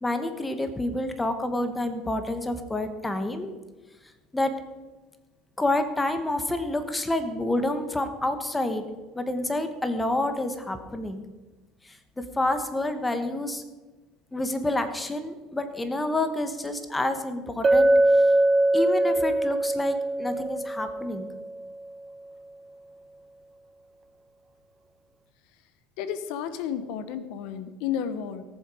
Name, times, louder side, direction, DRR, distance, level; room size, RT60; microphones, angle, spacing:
voice 1, 0.0-3.5 4.3-4.5 5.6-8.8 9.1-11.2 11.8-13.6 14.3-18.2 18.7-21.3, left 1 dB, 10° left, 8 dB, 1.3 m, -28 dB
Chink clink, 17.6-21.7, right 1 dB, 25° right, 0.5 m, -22 dB
voice 2, 26.0-28.4, left 8 dB, 70° left, 12 dB, 0.9 m, -32 dB
18.0 x 7.3 x 4.9 m, 1.2 s
supercardioid pair, 125°, 0 cm